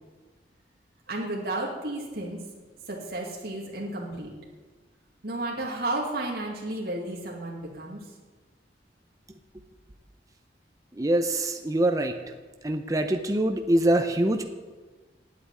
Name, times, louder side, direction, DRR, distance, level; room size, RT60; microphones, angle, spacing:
voice 1, 1.1-2.4 2.9-4.3 5.2-8.0, right 2 dB, 60° right, -3 dB, 2.2 m, -32 dB
voice 2, 11.0-12.1 12.6-14.5, right 1 dB, 20° right, 5 dB, 0.6 m, -24 dB
8.8 x 8.5 x 9.3 m, 1.3 s
head